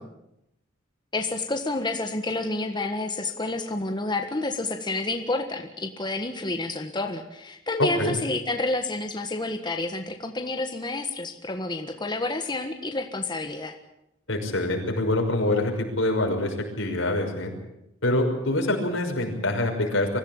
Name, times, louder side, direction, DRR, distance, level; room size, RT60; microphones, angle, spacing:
voice 1, 1.1-13.8, left 2 dB, 25° left, 4 dB, 1.5 m, -29 dB
voice 2, 7.8-8.2 14.3-17.5 18.0-20.2, left 1 dB, 80° left, 2 dB, 5.9 m, -25 dB
24.5 x 15.5 x 8.8 m, 0.83 s
head